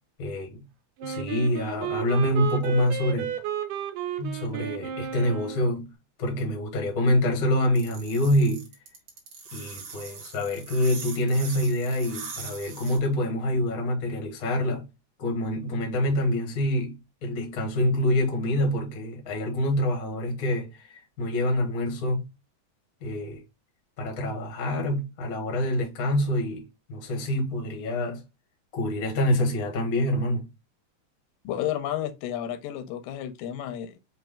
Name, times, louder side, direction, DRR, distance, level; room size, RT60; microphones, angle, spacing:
voice 1, 0.2-0.6 1.0-3.4 4.2-5.9 6.2-8.7 9.5-14.9 15.2-22.3 23.0-23.4 24.0-28.2 28.7-30.5, left 1 dB, 60° left, 0.9 m, -26 dB
Wind instrument woodwind instrument, 1.0-5.7, right 9 dB, 85° right, 2.3 m, -33 dB
sound 1, 7.8-13.0, right 5 dB, 55° right, 1.9 m, -41 dB
voice 2, 31.4-34.0, left 11 dB, 85° left, 2.3 m, -31 dB
5.4 x 2.7 x 3.6 m
omnidirectional pair, 4.0 m